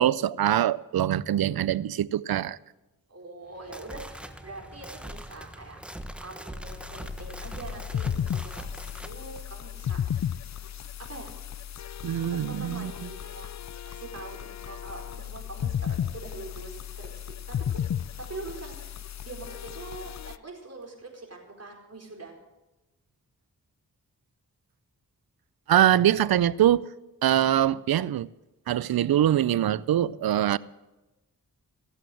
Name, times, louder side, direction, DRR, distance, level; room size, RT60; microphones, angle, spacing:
voice 1, 0.0-2.6 12.0-13.1 25.7-26.9 27.2-28.3 28.7-30.6, right 11 dB, 85° right, 0.5 m, -23 dB
voice 2, 3.1-5.8 6.2-10.6 11.0-11.3 12.5-13.5 13.8-17.9 18.2-22.3, right 3 dB, 45° right, 4.4 m, -44 dB
sound 1, 3.5-9.2, equal, 5° right, 1.3 m, -41 dB
sound 2, 6.7-20.4, left 9 dB, 50° left, 0.5 m, -34 dB
17.5 x 7.8 x 7.7 m
cardioid pair, 50°, 35 cm